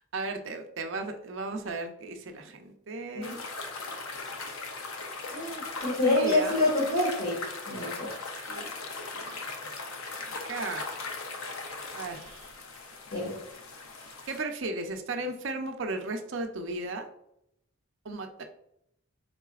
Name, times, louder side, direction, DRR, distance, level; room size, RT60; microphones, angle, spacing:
voice 1, 0.1-3.4 6.0-6.6 8.5-8.7 9.1-9.4 10.3-10.9 11.9-12.5 14.3-17.1 18.0-18.4, right 2 dB, 60° right, 5 dB, 0.6 m, -35 dB
sound 1, 3.2-14.4, left 3 dB, 85° left, 0.6 m, -39 dB
voice 2, 5.3-8.1 13.1-13.4, left 2 dB, 45° left, -8 dB, 1.5 m, -27 dB
4.8 x 3.7 x 2.4 m, 0.77 s
head